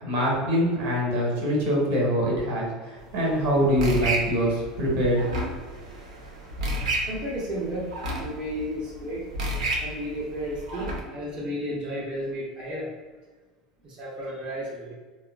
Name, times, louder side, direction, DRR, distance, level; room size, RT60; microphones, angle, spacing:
voice 1, 0.0-5.2, equal, 55° right, -3 dB, 1.1 m, -24 dB
sound 1, 3.0-11.0, right 1 dB, 70° right, 0.7 m, -32 dB
voice 2, 7.1-7.9 8.2-9.2 9.8-12.9 13.8-14.9, equal, 35° right, -6 dB, 0.8 m, -33 dB
3.4 x 2.4 x 2.4 m, 1.3 s
figure-of-eight pair, 75°, 4 cm